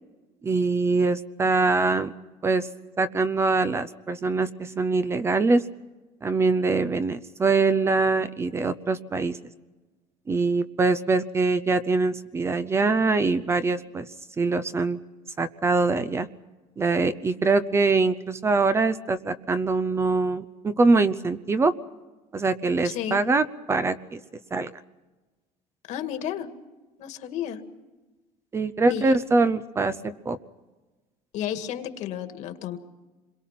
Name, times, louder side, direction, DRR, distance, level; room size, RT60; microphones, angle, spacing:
voice 1, 0.4-2.1 2.4-2.7 3.0-5.6 6.2-9.4 10.3-14.1 14.4-15.0 15.4-16.3 16.8-21.7 22.3-24.2 24.5-24.7 28.5-30.4, right 3 dB, 20° right, 13 dB, 0.7 m, -23 dB
voice 2, 22.8-23.2 25.9-26.5 27.0-27.6 28.9-29.0 31.3-32.8, left 10 dB, 60° left, 7 dB, 2.0 m, -32 dB
27.0 x 22.0 x 5.9 m, 1.2 s
cardioid pair, 145°, 14 cm